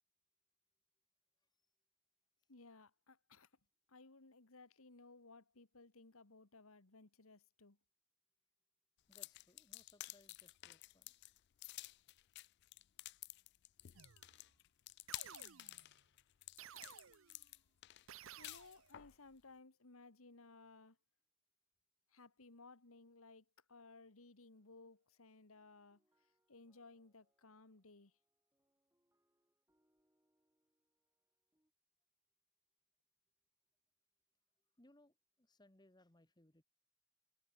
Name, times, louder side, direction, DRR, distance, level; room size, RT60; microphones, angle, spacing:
voice 1, 2.5-3.5 3.9-7.8 18.4-21.0 22.1-28.1, left 3 dB, 75° left, 1.7 m, -60 dB
sound 1, 9.1-19.2, left 17 dB, 50° left, 0.3 m, -52 dB
voice 2, 9.1-11.1 34.8-36.6, left 1 dB, 20° left, 1.4 m, -68 dB
sound 2, 13.9-14.5 15.1-15.9 16.6-17.5 18.1-19.0, right 9 dB, 65° right, 0.8 m, -56 dB
sound 3, 24.5-31.7, right 1 dB, 10° right, 6.2 m, -87 dB
head